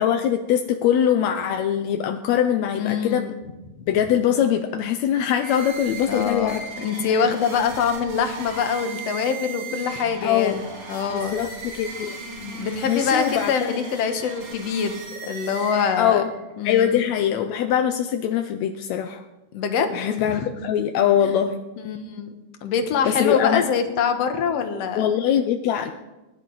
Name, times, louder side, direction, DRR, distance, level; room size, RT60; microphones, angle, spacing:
voice 1, 0.0-3.2 3.9-6.6 7.0-7.2 10.2-10.6 11.1-12.2 12.8-13.7 16.0-16.3 16.6-19.2 19.9-21.6 23.0-23.6 25.0-25.9, left 9 dB, 75° left, 6 dB, 1.7 m, -22 dB
voice 2, 2.8-3.3 6.1-6.5 6.8-10.6 10.9-11.4 12.4-16.2 16.6-17.0 19.5-19.9 20.2-20.5 21.9-22.3 22.6-25.1, left 6 dB, 60° left, 7 dB, 2.0 m, -24 dB
sound 1, 5.3-16.4, right 4 dB, 65° right, 5.1 m, -37 dB
21.5 x 11.0 x 4.0 m, 1.1 s
omnidirectional pair, 3.7 m